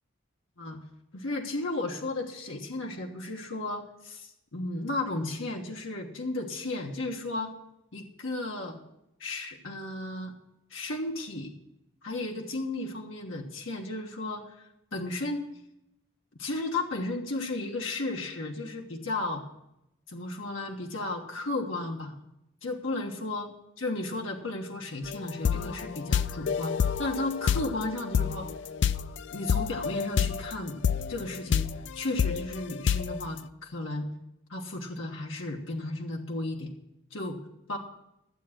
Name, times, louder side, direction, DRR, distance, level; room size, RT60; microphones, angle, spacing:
voice 1, 1.1-7.5 7.9-8.8 9.2-10.3 10.7-11.5 12.0-15.5 16.4-19.4 20.1-22.2 22.6-28.5 29.3-31.7 31.9-34.1 34.5-36.7 37.1-37.4 37.7-37.8, left 2 dB, 80° left, 1 dB, 1.3 m, -34 dB
sound 1, 25.0-30.5 30.8-33.2, left 7 dB, 60° left, 0.4 m, -28 dB
12.5 x 7.7 x 5.9 m, 0.84 s
head